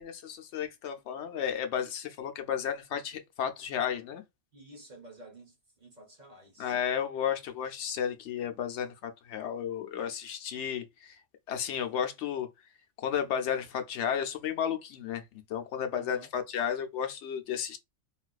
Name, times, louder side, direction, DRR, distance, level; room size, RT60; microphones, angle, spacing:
voice 1, 0.0-4.2 6.6-11.2 11.5-12.5 13.0-17.8, left 8 dB, 75° left, 0.9 m, -33 dB
voice 2, 4.5-6.7 15.9-16.3, right 1 dB, 45° right, 0.8 m, -52 dB
3.8 x 2.4 x 2.3 m
omnidirectional pair, 1.2 m